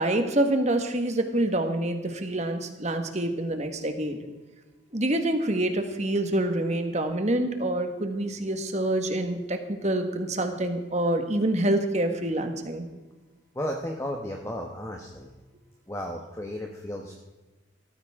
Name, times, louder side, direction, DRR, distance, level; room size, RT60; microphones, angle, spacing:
voice 1, 0.0-4.2 4.9-12.9, right 1 dB, 35° right, 6 dB, 1.6 m, -26 dB
voice 2, 13.5-15.3 15.9-17.1, equal, 15° left, 1 dB, 1.1 m, -34 dB
17.0 x 14.5 x 3.7 m, 1.2 s
head